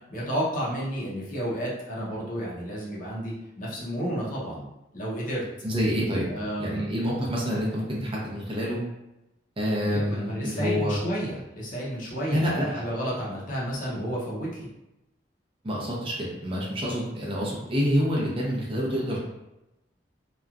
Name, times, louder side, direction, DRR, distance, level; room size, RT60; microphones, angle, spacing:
voice 1, 0.1-4.6 4.9-5.4 6.3-6.9 9.8-14.7, equal, 50° left, -5 dB, 0.8 m, -31 dB
voice 2, 5.6-6.3 6.6-8.8 9.6-11.0 12.3-12.8 15.6-19.2, equal, 30° right, -4 dB, 0.7 m, -27 dB
2.9 x 2.3 x 2.4 m, 0.92 s
head